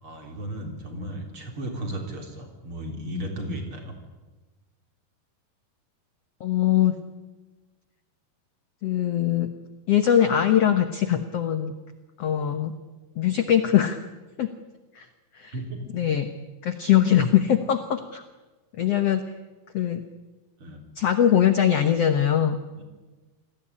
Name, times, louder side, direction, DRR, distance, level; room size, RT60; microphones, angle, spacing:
voice 1, 0.0-3.9 15.5-16.0 20.6-20.8 22.7-22.8, equal, 35° right, 3 dB, 4.2 m, -35 dB
voice 2, 6.4-7.0 8.8-9.5 9.9-11.7 12.2-12.7 13.2-14.0 14.4-14.5 14.9-15.1 15.3-15.5 15.9-16.3 16.6-18.2 18.8-19.2 19.7-20.0 20.9-22.6, left 10 dB, 70° left, 9 dB, 1.5 m, -21 dB
28.0 x 19.0 x 9.9 m, 1.2 s
omnidirectional pair, 4.5 m